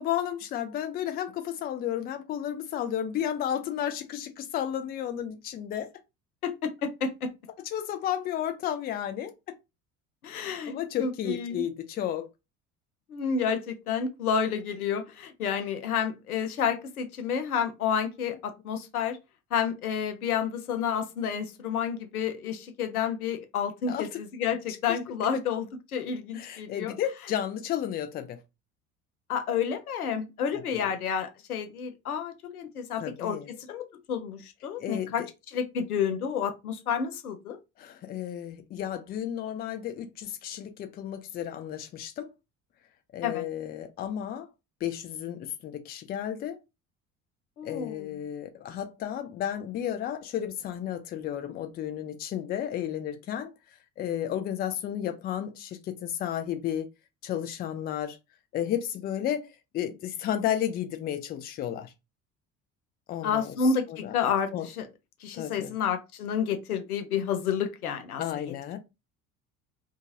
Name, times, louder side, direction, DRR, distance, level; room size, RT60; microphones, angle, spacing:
voice 1, 0.0-5.9 7.6-9.3 10.7-12.3 23.9-24.1 25.2-25.3 26.3-28.4 30.7-30.8 33.0-33.5 34.8-35.1 37.8-42.3 43.1-44.5 44.8-46.6 47.6-53.5 54.0-56.9 57.2-58.2 58.5-59.5 59.7-61.9 63.1-63.6 63.9-64.2 64.5-64.7 65.3-65.7 68.2-68.8, left 10 dB, 25° left, 0.4 m, -32 dB
voice 2, 6.4-7.3 10.2-10.7 11.0-11.6 13.1-19.2 19.5-26.9 29.3-35.2 35.5-37.6 43.2-43.4 47.6-48.1 63.2-64.9 65.2-68.5, left 7 dB, 80° left, 0.6 m, -30 dB
2.7 x 2.4 x 2.6 m
figure-of-eight pair, 55°, 44 cm